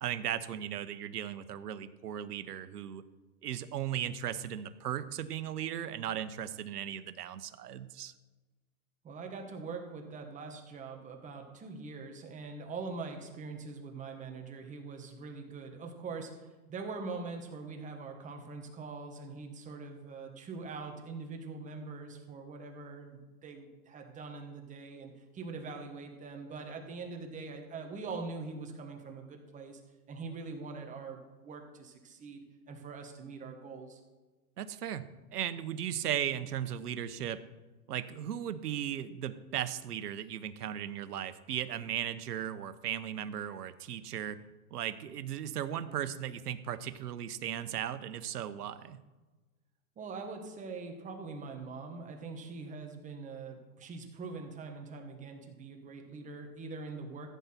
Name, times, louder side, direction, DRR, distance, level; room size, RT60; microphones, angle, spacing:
voice 1, 0.0-3.0 3.4-8.1 34.6-37.4 37.9-44.4 44.7-49.0, right 10 dB, 80° right, 12 dB, 1.0 m, -37 dB
voice 2, 9.0-29.8 30.1-32.4 32.7-34.0 50.0-57.4, right 4 dB, 15° right, 3 dB, 1.3 m, -43 dB
14.5 x 8.3 x 4.4 m, 1.2 s
hypercardioid pair, 140°, 46 cm